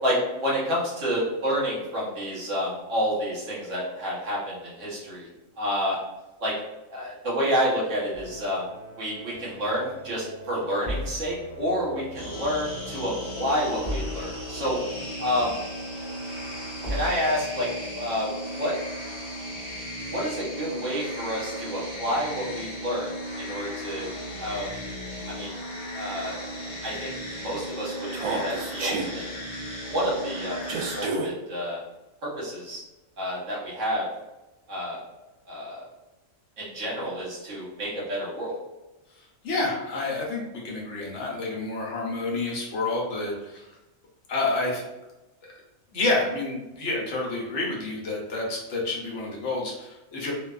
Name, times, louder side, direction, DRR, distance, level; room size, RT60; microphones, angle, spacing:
voice 1, 0.0-5.3 5.6-6.0 6.4-6.5 6.9-8.7 9.0-14.8 15.2-15.6 15.9-16.1 16.9-17.7 17.9-18.7 20.1-24.7 25.3-25.6 25.9-26.4 26.8-27.1 27.4-29.2 29.9-30.6 30.9-31.8 32.2-32.8 33.2-34.1 34.7-35.0 35.5-35.9 36.6-38.6, equal, 65° right, -5 dB, 1.3 m, -29 dB
sound 1, 8.1-17.1, equal, ahead, 1.2 m, -39 dB
sound 2, 12.1-31.1, equal, 35° left, 1.0 m, -36 dB
Human voice, 28.1-29.1 30.7-31.3, right 3 dB, 85° right, 1.0 m, -29 dB
voice 2, 39.4-43.7 44.3-44.8 45.9-50.3, left 2 dB, 65° left, -2 dB, 0.9 m, -29 dB
2.6 x 2.3 x 2.3 m, 1.0 s
omnidirectional pair, 1.4 m